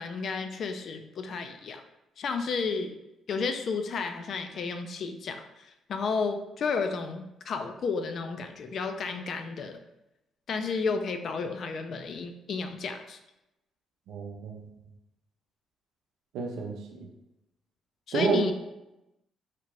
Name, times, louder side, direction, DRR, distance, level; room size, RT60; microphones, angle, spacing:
voice 1, 0.0-1.8 2.2-3.0 3.3-9.8 10.5-13.2 18.1-18.5, left 4 dB, 60° left, 7 dB, 0.3 m, -32 dB
voice 2, 14.1-14.7 16.3-17.1 18.1-18.5, right 4 dB, 90° right, 1 dB, 0.5 m, -29 dB
2.8 x 2.5 x 3.0 m, 0.93 s
cardioid pair, 90°, 0 cm